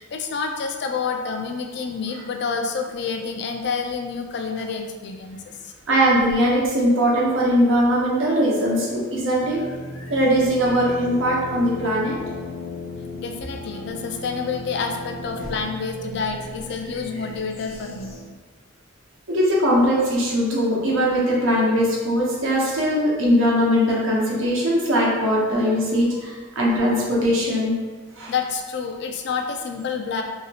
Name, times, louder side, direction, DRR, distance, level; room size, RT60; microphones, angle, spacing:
voice 1, 0.0-5.7 13.2-18.1 28.3-30.2, left 5 dB, 55° left, 4 dB, 0.3 m, -28 dB
voice 2, 5.9-9.6 10.1-12.2 19.3-27.8 28.2-28.3, equal, 75° right, -4 dB, 0.8 m, -20 dB
sound 1, 9.4-18.2, left 2 dB, 75° left, 0.7 m, -36 dB
3.0 x 2.7 x 2.7 m, 1.4 s
head